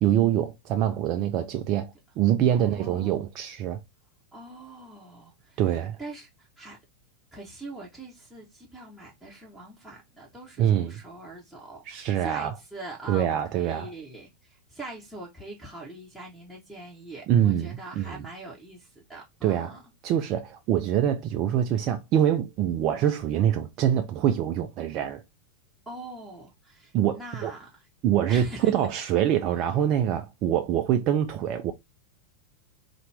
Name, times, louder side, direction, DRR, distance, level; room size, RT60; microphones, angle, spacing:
voice 1, 0.0-3.8 5.6-6.0 10.6-11.0 11.9-12.6 13.1-13.9 17.3-18.2 19.4-19.8 20.0-25.2 26.9-27.5 28.0-31.7, right 10 dB, 40° right, 0.4 m, -25 dB
voice 2, 2.5-3.2 4.3-5.6 6.0-6.8 7.3-19.8 25.9-27.8 28.3-28.7, right 2 dB, ahead, 1.3 m, -43 dB
4.2 x 2.5 x 3.3 m
figure-of-eight pair, 90°, 0 cm